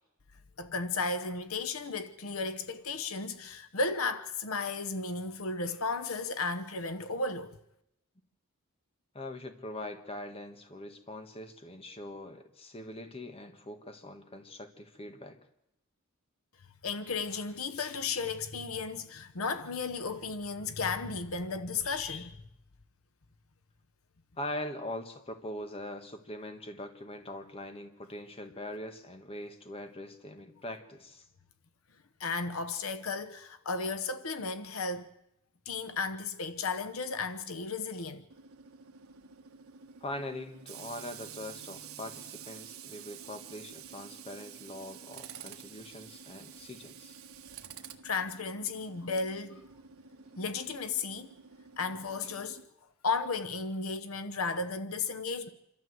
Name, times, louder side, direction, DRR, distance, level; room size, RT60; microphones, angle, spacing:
voice 1, 0.6-7.6 16.8-22.4 32.2-35.1 35.7-38.2 48.0-49.6 50.4-51.3 51.8-52.6 53.0-55.5, left 4 dB, 80° left, 1.0 m, -34 dB
voice 2, 9.1-15.4 24.4-31.2 40.0-47.2, left 1 dB, 25° left, 1.5 m, -42 dB
Tools, 38.3-52.6, right 7 dB, 80° right, 1.5 m, -49 dB
27.0 x 12.5 x 7.9 m
head